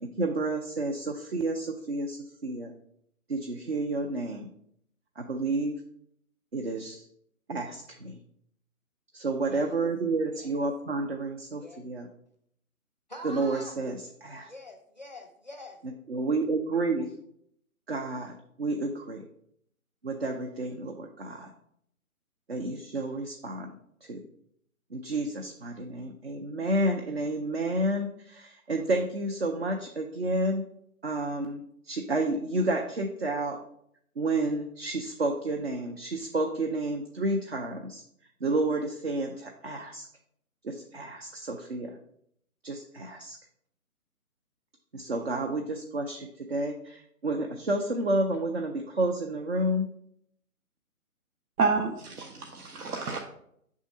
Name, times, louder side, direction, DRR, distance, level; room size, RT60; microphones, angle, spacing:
voice 1, 0.0-2.7 3.3-4.5 5.2-5.7 6.5-7.0 7.5-8.2 9.1-12.1 13.2-14.5 15.8-17.1 17.9-19.2 20.0-21.5 22.5-23.7 24.1-24.2 24.9-30.6 31.0-33.6 34.2-38.0 38.4-40.1 40.6-42.0 42.6-43.4 44.9-49.9, right 2 dB, 45° right, 3 dB, 0.5 m, -30 dB
voice 2, 9.4-9.8 10.3-10.6 11.6-11.8 13.1-13.8 14.5-15.8, left 1 dB, 30° left, 4 dB, 0.5 m, -45 dB
voice 3, 51.6-53.2, right 4 dB, 90° right, 2 dB, 0.9 m, -29 dB
5.1 x 3.6 x 5.1 m, 0.71 s
hypercardioid pair, 170°, 44 cm